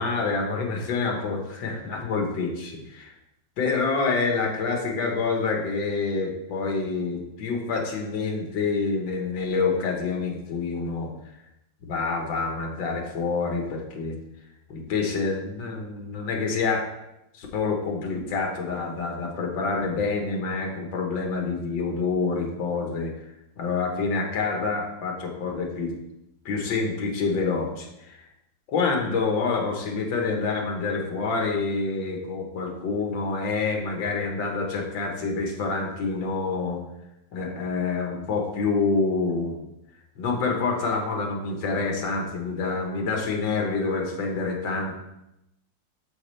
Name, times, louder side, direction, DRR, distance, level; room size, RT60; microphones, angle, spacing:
voice 1, 0.0-3.1 3.6-11.1 11.8-14.2 14.7-16.9 17.4-23.2 23.6-25.9 26.5-28.2 28.7-36.8 37.3-39.6 40.2-44.9, left 4 dB, 80° left, 2 dB, 2.0 m, -27 dB
8.4 x 6.7 x 3.3 m, 0.89 s
omnidirectional pair, 2.0 m